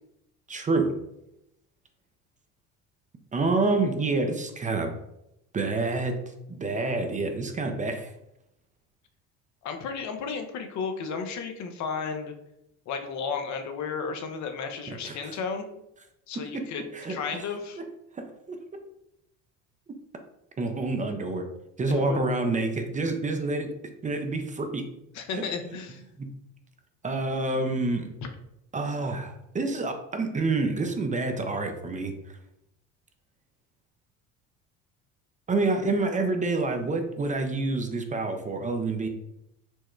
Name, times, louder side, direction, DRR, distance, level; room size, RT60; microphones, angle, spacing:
voice 1, 0.5-1.0 3.3-4.9 5.5-6.1 6.5-8.1 14.9-15.3 16.5-17.5 18.1-18.6 20.6-21.5 21.8-23.7 24.0-24.9 25.3-25.4 26.2-26.3 27.0-28.1 28.7-32.4 35.5-39.1, right 3 dB, 25° right, 6 dB, 0.5 m, -28 dB
voice 2, 9.6-12.3 12.9-15.7 16.3-16.8 17.1-17.8 21.9-22.2 25.1-26.0, left 5 dB, 60° left, 6 dB, 0.7 m, -33 dB
4.5 x 2.1 x 4.4 m, 0.82 s
supercardioid pair, 90°, 33 cm